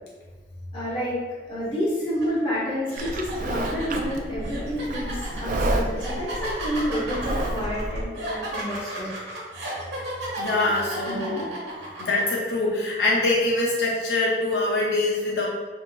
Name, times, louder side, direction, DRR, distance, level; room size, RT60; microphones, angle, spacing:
voice 1, 0.7-1.2 1.5-9.1 11.0-11.5, equal, 30° left, -7 dB, 1.3 m, -29 dB
sound 1, 2.2-2.4 2.9-12.2, right 1 dB, 70° right, 1.2 m, -34 dB
Livestock farm animals working animals, 3.0-8.0, right 1 dB, 50° right, 0.4 m, -30 dB
voice 2, 10.4-11.5 12.0-15.5, left 2 dB, 75° left, -5 dB, 0.7 m, -24 dB
5.5 x 2.9 x 2.5 m, 1.4 s
head